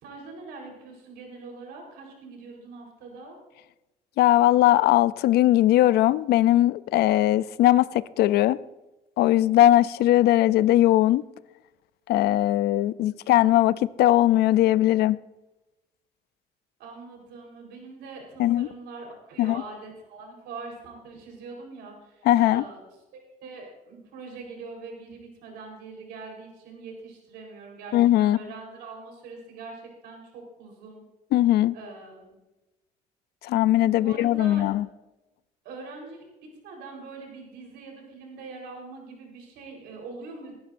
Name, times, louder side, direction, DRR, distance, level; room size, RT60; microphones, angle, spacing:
voice 1, 0.0-3.4 16.8-22.8 23.1-31.0 31.7-32.4 34.0-34.7 35.6-40.6, right 3 dB, 90° right, 4.3 m, -43 dB
voice 2, 4.2-8.6 9.2-11.2 12.1-15.2 18.4-18.7 19.4-19.6 22.2-22.6 27.9-28.4 31.3-31.8 33.4-34.9, left 14 dB, 70° left, 0.4 m, -20 dB
19.5 x 11.0 x 2.6 m
cardioid pair, 110°, 17 cm